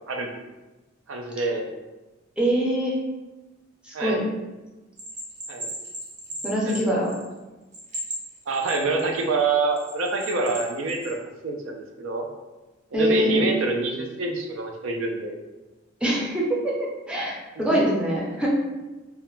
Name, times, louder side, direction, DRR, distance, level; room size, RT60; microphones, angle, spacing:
voice 1, 1.1-1.7 3.9-4.2 5.5-5.7 6.6-6.8 8.5-11.2 11.4-12.2 12.9-15.4 17.7-18.0, right 3 dB, 75° right, 2 dB, 0.4 m, -26 dB
voice 2, 2.4-3.0 3.8-4.2 6.4-7.1 12.9-13.4 16.0-18.5, equal, 5° right, -5 dB, 0.5 m, -24 dB
Bell, 5.0-7.4 7.7-9.2 9.8-11.1, right 1 dB, 35° right, 0.7 m, -36 dB
2.3 x 2.1 x 3.0 m, 1.1 s
head